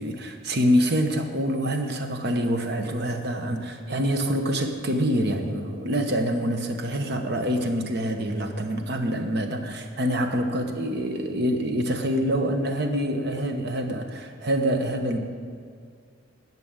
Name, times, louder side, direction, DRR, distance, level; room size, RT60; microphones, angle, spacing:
voice 1, 0.0-15.2, equal, 55° right, 5 dB, 1.1 m, -26 dB
11.0 x 5.9 x 8.9 m, 2.1 s
head